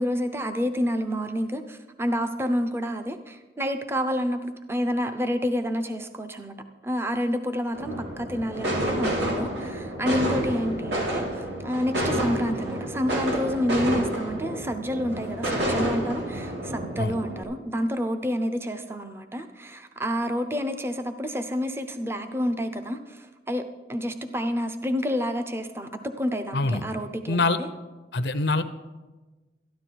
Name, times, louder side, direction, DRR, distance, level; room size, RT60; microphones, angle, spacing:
voice 1, 0.0-6.6 6.8-27.7, equal, 15° right, 8 dB, 0.7 m, -29 dB
sound 1, 7.7-17.4, right 1 dB, 75° right, 3.3 m, -29 dB
voice 2, 26.5-26.8 27.3-27.6 28.1-28.6, left 3 dB, 70° left, 11 dB, 0.7 m, -24 dB
13.0 x 11.5 x 4.6 m, 1.2 s
head